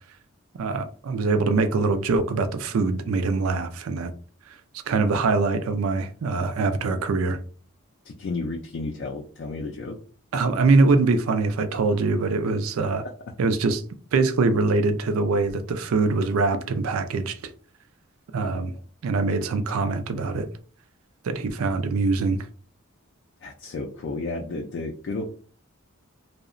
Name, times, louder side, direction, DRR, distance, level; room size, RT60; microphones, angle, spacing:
voice 1, 0.5-4.1 4.9-7.4 10.3-13.0 13.4-13.8 14.1-17.5 18.3-18.7 19.0-20.5 21.2-22.4, right 3 dB, 75° right, 0.4 m, -23 dB
voice 2, 8.0-10.0 13.0-13.1 23.4-25.3, left 3 dB, 55° left, 0.3 m, -32 dB
2.7 x 2.0 x 2.4 m
head